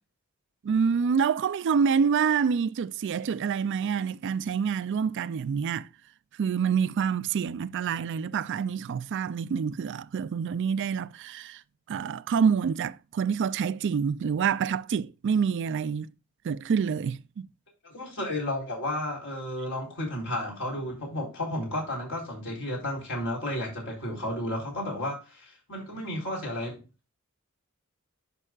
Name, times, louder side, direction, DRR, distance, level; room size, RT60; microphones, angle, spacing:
voice 1, 0.6-5.9 6.4-11.6 11.9-16.1 16.4-17.5, right 6 dB, 55° right, 0.3 m, -27 dB
voice 2, 17.8-26.8, left 1 dB, 60° left, 3.9 m, -32 dB
11.0 x 5.5 x 2.3 m
head